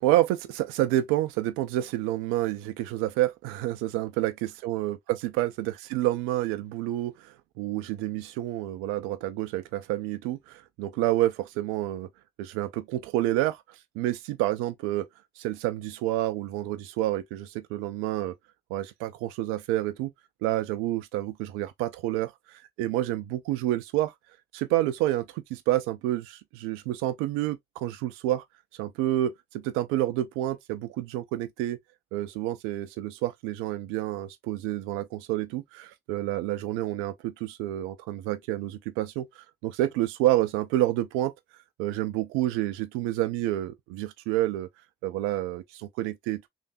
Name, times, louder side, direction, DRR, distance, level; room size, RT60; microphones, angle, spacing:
voice 1, 0.0-12.1 12.4-13.6 13.9-15.1 15.4-18.3 18.7-20.1 20.4-24.1 24.5-28.4 28.8-31.8 32.1-41.3 41.8-44.7 45.0-46.5, right 14 dB, 80° right, 0.5 m, -29 dB
3.3 x 2.5 x 2.6 m
hypercardioid pair, 45°, 21 cm